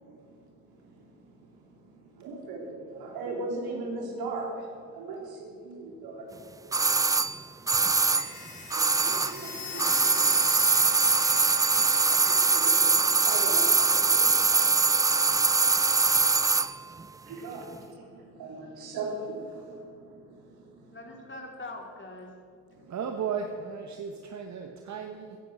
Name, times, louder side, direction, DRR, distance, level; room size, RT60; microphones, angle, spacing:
voice 1, 0.0-6.3 6.8-7.1 7.5-7.6 8.7-9.8 11.0-15.0 17.3-21.0 22.7-22.9, right 2 dB, 60° right, 0 dB, 3.6 m, -40 dB
sound 1, 6.7-9.5 9.7-16.7 17.0-17.1, right 4 dB, 10° right, 0.3 m, -23 dB
sound 2, 8.1-12.7, left 5 dB, 50° left, 4.0 m, -41 dB
voice 2, 9.5-10.5 20.9-22.3, left 2 dB, 30° left, 2 dB, 3.2 m, -43 dB
voice 3, 15.3-15.8 22.9-25.4, right 6 dB, 40° right, 4 dB, 1.2 m, -36 dB
15.0 x 10.5 x 6.1 m, 2.4 s
hypercardioid pair, 55°, 41 cm